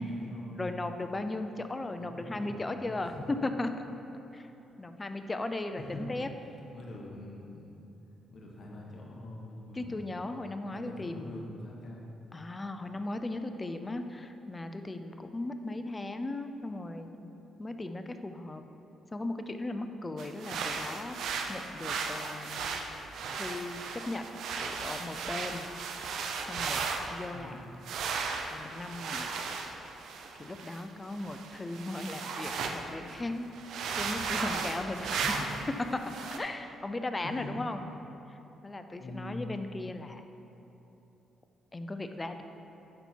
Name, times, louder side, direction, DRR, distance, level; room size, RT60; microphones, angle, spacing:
voice 1, 0.0-0.8 1.9-2.9 5.8-6.0 6.7-7.8 8.3-10.0 10.7-12.1 27.3-27.7 35.4-35.5 37.2-37.5 39.0-39.6, left 1 dB, 50° left, -2 dB, 1.3 m, -44 dB
voice 2, 0.5-3.1 3.4-3.7 4.3-4.5 4.8-6.3 9.7-11.5 12.3-17.3 17.6-18.6 19.1-22.8 23.4-24.3 24.6-25.7 26.5-27.7 28.5-29.3 30.4-33.5 34.0-35.5 35.9-37.8 38.3-40.2 41.7-42.4, left 2 dB, 20° left, 8 dB, 0.5 m, -37 dB
sound 1, 20.2-27.2 27.8-32.8 33.1-33.2 33.5-35.7 36.0-36.4, right 5 dB, 75° right, 0.6 m, -36 dB
11.5 x 4.3 x 4.4 m, 3.0 s
cardioid pair, 90°, 0 cm